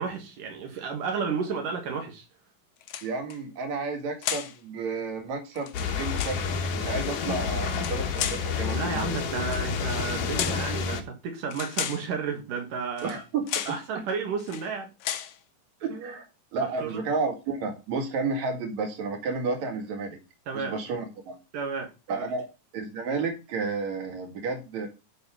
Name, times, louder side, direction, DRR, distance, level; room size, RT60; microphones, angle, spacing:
voice 1, 0.0-2.2 8.7-13.2 13.7-14.9 16.8-17.0 20.5-20.8 21.5-22.3, right 5 dB, 85° right, 2 dB, 3.4 m, -32 dB
sound 1, 2.8-3.4 4.2-4.6 5.5-6.4 7.6-8.5 9.4-9.7 10.3-10.7 11.5-12.1 13.0-13.2 13.5-13.8 14.4-14.7 15.0-15.4, left 10 dB, 70° left, 1.8 m, -33 dB
voice 2, 3.0-9.0 13.0-13.4 15.8-16.2 16.5-20.2 20.5-21.3 22.1-22.5 22.7-24.9, right 4 dB, 65° right, 3 dB, 3.3 m, -31 dB
sound 2, 5.7-11.0, left 6 dB, 85° left, 2.9 m, -29 dB
12.0 x 4.4 x 5.8 m, 0.29 s
omnidirectional pair, 3.6 m